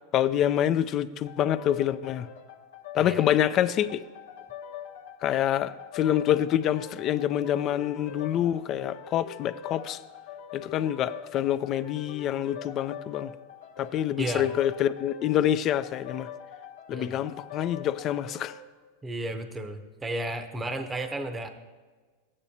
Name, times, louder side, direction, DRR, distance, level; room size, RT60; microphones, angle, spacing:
voice 1, 0.1-2.3 2.9-4.0 5.2-10.0 10.5-13.3 13.8-16.3 16.9-18.5, left 11 dB, 40° left, 0.4 m, -26 dB
sound 1, 1.3-18.7, left 7 dB, 85° left, 1.0 m, -43 dB
voice 2, 3.0-3.3 14.2-14.5 16.9-17.2 19.0-21.5, right 1 dB, 15° right, 0.7 m, -33 dB
13.0 x 8.6 x 2.8 m
hypercardioid pair, 105°, 0 cm